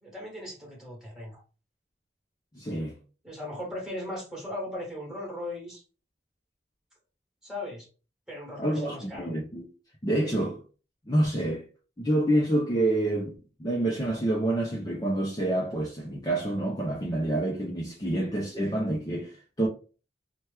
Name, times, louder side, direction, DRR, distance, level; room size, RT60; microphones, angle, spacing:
voice 1, 0.0-1.4 3.2-5.8 7.4-7.9 8.3-9.3, left 1 dB, 5° right, 1.4 m, -38 dB
voice 2, 2.5-3.0 8.6-9.7 10.0-10.6 11.1-11.7 12.0-19.7, right 1 dB, 20° left, 0.5 m, -27 dB
3.0 x 2.1 x 3.3 m
head